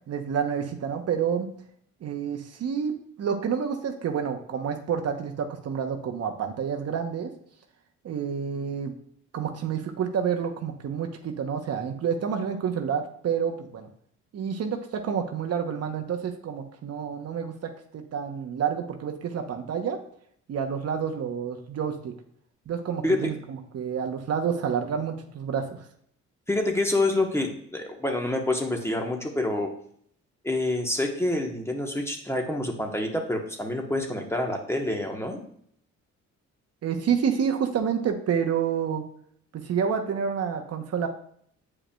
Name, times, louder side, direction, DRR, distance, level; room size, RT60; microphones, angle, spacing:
voice 1, 0.1-1.5 2.0-7.3 8.0-8.9 9.3-13.9 14.3-20.0 20.5-22.1 22.7-25.8 36.8-39.0 39.5-41.1, right 7 dB, 55° right, 5 dB, 0.9 m, -29 dB
voice 2, 26.5-29.7 30.4-35.4, left 2 dB, 10° left, 2 dB, 1.0 m, -27 dB
8.5 x 5.0 x 2.3 m, 0.65 s
cardioid pair, 90°, 30 cm